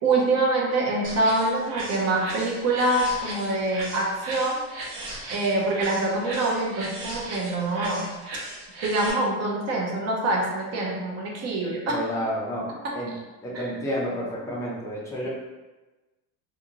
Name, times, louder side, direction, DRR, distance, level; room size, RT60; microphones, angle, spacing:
voice 1, 0.0-4.6 5.3-8.1 8.8-12.0 12.8-13.0 13.5-13.6, right 2 dB, 35° right, -1 dB, 0.6 m, -25 dB
sound 1, 1.0-9.1, right 2 dB, 75° right, 1.2 m, -37 dB
voice 2, 11.9-13.1 13.4-15.3, equal, 10° left, -5 dB, 0.4 m, -30 dB
2.5 x 2.5 x 2.8 m, 1.2 s
cardioid pair, 145°, 43 cm